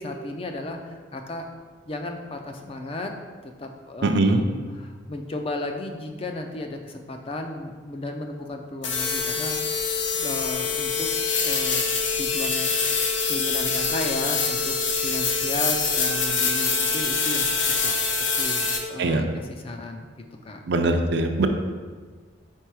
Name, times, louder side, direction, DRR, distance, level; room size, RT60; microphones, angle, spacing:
voice 1, 0.0-1.4 1.9-3.1 3.6-11.1 11.4-11.9 12.2-14.8 15.0-17.9 18.3-20.1 20.4-20.6, left 2 dB, 30° left, 4 dB, 0.4 m, -34 dB
voice 2, 4.0-4.4 19.0-19.2 20.7-21.5, right 2 dB, 60° right, 5 dB, 0.5 m, -21 dB
sound 1, 8.8-18.8, left 5 dB, 65° left, 0.7 m, -25 dB
4.5 x 4.5 x 4.7 m, 1.5 s
head